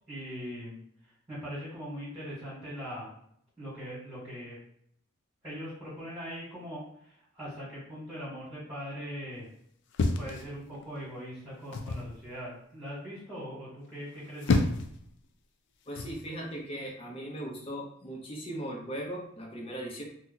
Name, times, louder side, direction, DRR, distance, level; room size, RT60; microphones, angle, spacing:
voice 1, 0.1-0.8 1.0-3.1 3.6-4.6 5.4-9.5 10.2-14.7, equal, 15° right, -10 dB, 1.3 m, -41 dB
sound 1, 9.9-11.0 11.7-12.1 14.1-15.0 15.9-16.2, left 3 dB, 55° left, 0.3 m, -29 dB
voice 2, 15.9-20.0, right 1 dB, 25° left, -1 dB, 0.7 m, -38 dB
2.9 x 2.1 x 3.8 m, 0.68 s
head